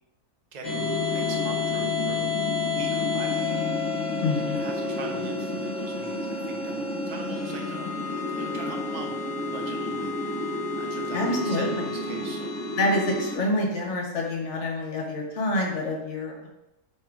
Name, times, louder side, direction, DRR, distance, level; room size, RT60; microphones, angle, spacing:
voice 1, 0.5-2.3 2.7-3.5 4.4-7.9 8.3-12.6, right 3 dB, 45° right, 1 dB, 0.5 m, -42 dB
sound 1, 0.6-13.3, left 3 dB, 40° left, 1.1 m, -29 dB
voice 2, 4.2-4.6 11.1-11.9 12.8-16.5, left 2 dB, 55° left, 0 dB, 1.1 m, -27 dB
3.7 x 3.0 x 4.5 m, 0.90 s
omnidirectional pair, 1.5 m